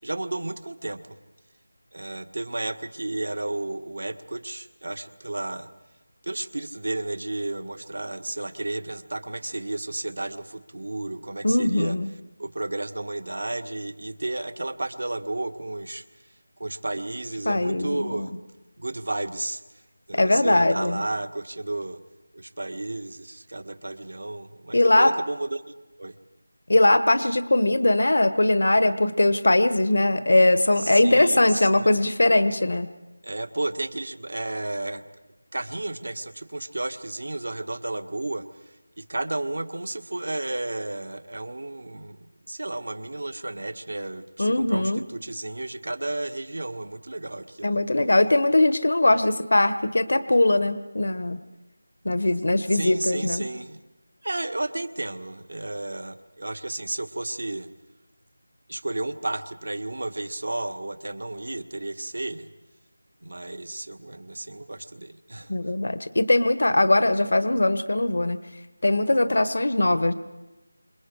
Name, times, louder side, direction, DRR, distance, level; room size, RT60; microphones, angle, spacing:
voice 1, 0.0-1.2 1.9-5.7 6.2-12.0 12.4-16.0 16.6-18.3 18.8-19.6 20.1-22.0 22.3-26.1 30.8-32.0 33.2-35.0 35.5-38.5 39.0-42.2 42.5-47.8 52.7-53.8 54.2-57.7 58.7-62.5 63.2-65.5, right 2 dB, 70° right, 10 dB, 1.7 m, -32 dB
voice 2, 11.4-12.1 17.4-18.3 20.1-21.0 24.7-25.1 26.7-32.9 44.4-45.0 47.6-51.4 52.0-53.4 65.5-68.4 68.8-70.1, left 2 dB, 65° left, 12 dB, 1.4 m, -21 dB
30.0 x 27.5 x 4.9 m, 1.1 s
figure-of-eight pair, 170°, 0 cm